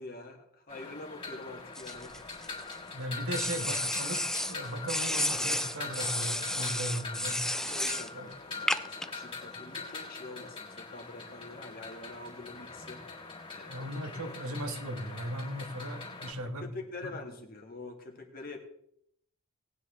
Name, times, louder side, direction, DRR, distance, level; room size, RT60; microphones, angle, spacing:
voice 1, 0.0-2.2 6.7-6.9 7.7-13.0 13.5-13.9 14.3-14.4 16.4-18.6, left 2 dB, 40° left, 2 dB, 2.0 m, -45 dB
sound 1, 0.7-16.3, left 4 dB, 25° left, 3.6 m, -43 dB
sound 2, 1.8-2.8 3.3-4.6 4.9-8.1 8.7-9.1, left 1 dB, ahead, 0.4 m, -32 dB
voice 2, 2.9-7.5 8.1-8.3 13.7-16.7 17.0-17.1, right 1 dB, 70° right, 5 dB, 1.6 m, -37 dB
18.5 x 9.5 x 3.3 m, 0.70 s
head